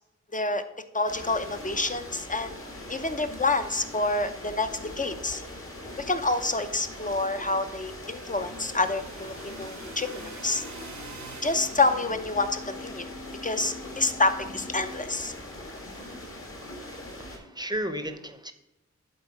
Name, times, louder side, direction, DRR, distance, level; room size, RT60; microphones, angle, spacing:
voice 1, 0.3-0.6 0.9-2.6 2.9-5.4 6.0-10.6 11.4-13.1 13.4-15.3, left 3 dB, 25° left, 9 dB, 0.7 m, -28 dB
sound 1, 1.1-17.4, left 1 dB, 45° left, 1.7 m, -41 dB
sound 2, 7.4-12.2, right 5 dB, 70° right, 0.7 m, -47 dB
sound 3, 8.0-11.1 11.5-15.1, left 3 dB, 75° left, 1.3 m, -46 dB
voice 2, 17.2-18.5, equal, 15° right, 9 dB, 0.8 m, -33 dB
8.3 x 3.9 x 5.8 m, 0.94 s
wide cardioid pair, 55°, 30 cm